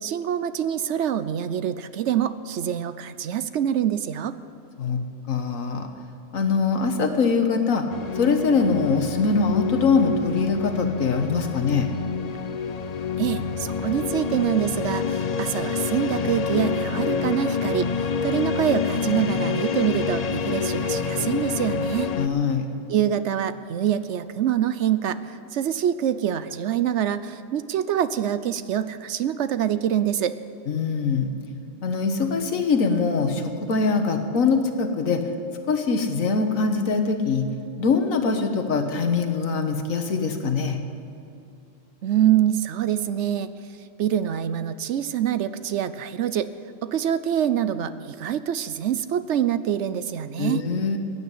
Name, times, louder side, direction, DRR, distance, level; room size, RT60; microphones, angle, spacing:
voice 1, 0.0-4.3 13.2-17.9 18.2-22.1 22.9-30.4 42.0-43.5 44.0-46.5 46.8-50.6, right 10 dB, 65° right, 13 dB, 0.9 m, -25 dB
voice 2, 5.3-5.9 6.3-7.8 8.1-11.9 22.1-22.7 30.7-31.3 31.8-35.2 35.7-37.5 37.8-40.8 50.4-51.0, left 4 dB, 90° left, 6 dB, 1.7 m, -23 dB
sound 1, 7.9-22.3, left 5 dB, 50° left, 0.5 m, -27 dB
16.5 x 9.5 x 8.2 m, 2.6 s
omnidirectional pair, 1.4 m